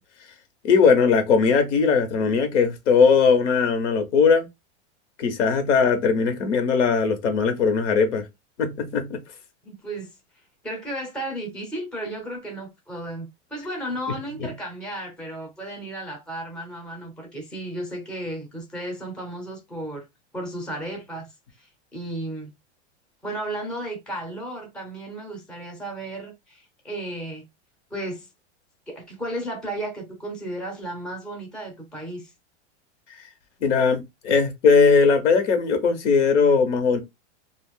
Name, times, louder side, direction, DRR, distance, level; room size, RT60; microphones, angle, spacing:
voice 1, 0.6-4.5 5.2-8.2 8.6-9.2 33.6-37.0, left 5 dB, 90° left, 1.1 m, -19 dB
voice 2, 9.6-10.1 10.6-20.1 20.3-21.3 21.6-22.5 23.2-27.4 27.9-28.3 28.9-32.3, right 1 dB, 5° left, 0.6 m, -34 dB
2.4 x 2.4 x 3.5 m
supercardioid pair, 155°, 35 cm